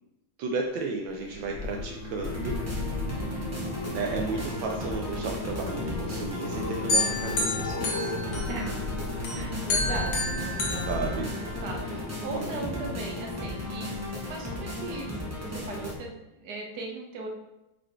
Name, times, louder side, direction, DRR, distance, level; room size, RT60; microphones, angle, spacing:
voice 1, 0.4-2.6 3.9-8.1 10.9-11.3 12.3-12.8, right 4 dB, 80° right, 1 dB, 1.4 m, -33 dB
sound 1, 1.1-14.4 14.9-15.3 15.5-15.6, left 3 dB, 50° left, 1.1 m, -36 dB
sound 2, 2.2-15.9, left 1 dB, 15° right, 0.6 m, -35 dB
voice 2, 3.2-3.8 8.5-8.8 9.3-10.9 11.3-14.0 14.3-17.3, right 3 dB, 60° right, 1 dB, 1.6 m, -38 dB
sound 3, 6.9-8.8 9.2-11.8, left 2 dB, 85° left, 1.9 m, -30 dB
5.1 x 4.8 x 4.3 m, 0.94 s
omnidirectional pair, 2.0 m